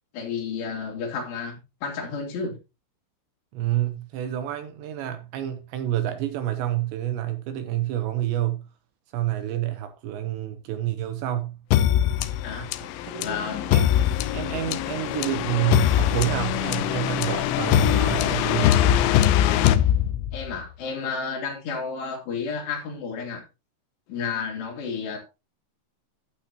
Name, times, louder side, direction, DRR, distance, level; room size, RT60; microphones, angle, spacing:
voice 1, 0.1-2.6 12.4-12.7 13.2-13.7 20.3-23.4 24.1-25.2, left 5 dB, 60° left, 4.2 m, -31 dB
voice 2, 3.5-8.6 9.1-11.6 13.0-13.4 13.7-13.9 14.3-19.1, right 13 dB, 75° right, 2.9 m, -28 dB
sound 1, 11.7-20.5, left 12 dB, 80° left, 2.8 m, -22 dB
11.5 x 9.0 x 2.9 m
omnidirectional pair, 5.7 m